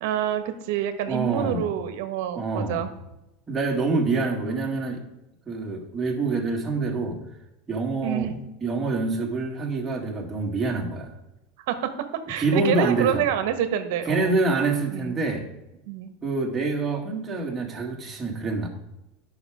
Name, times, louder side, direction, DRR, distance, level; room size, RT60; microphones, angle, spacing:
voice 1, 0.0-2.9 8.0-8.4 11.7-14.3 14.9-15.1 15.9-16.1, right 10 dB, 75° right, 9 dB, 1.2 m, -27 dB
voice 2, 1.1-1.7 2.3-2.8 3.5-5.0 5.5-7.2 7.7-8.3 8.6-11.1 12.4-13.2 14.1-15.5 16.2-18.7, right 3 dB, 15° right, -1 dB, 2.0 m, -26 dB
9.9 x 6.0 x 5.0 m, 0.92 s
supercardioid pair, 130°, 0 cm